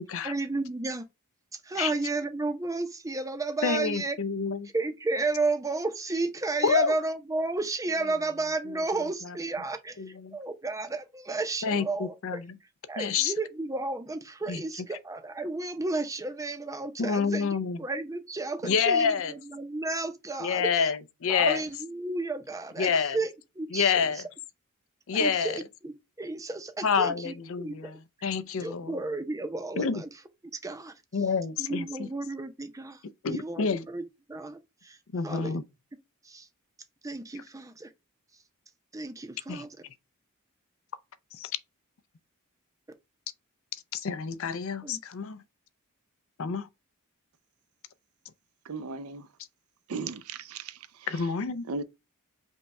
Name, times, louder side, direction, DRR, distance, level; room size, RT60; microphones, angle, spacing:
voice 1, 0.2-1.1 1.5-4.2 4.7-10.0 10.3-12.1 12.9-17.5 17.8-20.9 21.3-23.9 25.1-27.8 28.6-30.1 30.6-30.9 31.6-33.0 33.3-34.0 34.3-35.0 35.2-35.6 36.2-36.5 37.0-37.9 38.9-39.7 44.8-45.0, right 3 dB, 15° right, 0.6 m, -32 dB
voice 2, 3.6-4.7 6.6-6.9 8.7-9.4 10.0-10.4 11.6-12.6 13.0-13.3 14.5-14.6 17.0-17.8 18.6-19.3 20.4-21.6 22.8-23.2 23.7-24.3 25.1-25.6 26.8-29.0 29.8-30.0 31.1-32.1 33.2-33.8 35.1-35.6 39.5-39.7 41.3-41.6 43.9-45.4 46.4-46.7 51.1-51.6, left 6 dB, 65° left, 0.5 m, -28 dB
voice 3, 48.6-49.3 49.9-51.3 51.7-51.8, right 4 dB, 80° right, 0.5 m, -37 dB
5.4 x 2.3 x 4.1 m
head